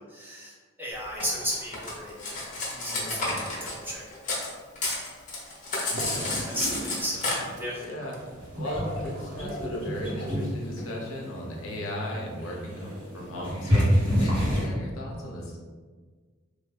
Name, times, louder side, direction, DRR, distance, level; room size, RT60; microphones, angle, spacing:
voice 1, 0.0-2.2 2.7-4.0 6.0-7.8, equal, 10° right, -6 dB, 0.8 m, -35 dB
Cutlery silverware, 1.2-4.5 4.8-7.3, left 2 dB, 40° left, 0.8 m, -31 dB
voice 2, 3.0-3.4 5.9-6.4 7.3-7.5 7.8-8.2 8.5-15.6, equal, 75° left, -2 dB, 0.7 m, -36 dB
Gurgling / Toilet flush, 6.0-9.9, right 1 dB, 40° right, 0.4 m, -40 dB
sound 1, 8.2-14.7, equal, 70° right, 1.4 m, -28 dB
3.1 x 2.3 x 3.3 m, 1.5 s
head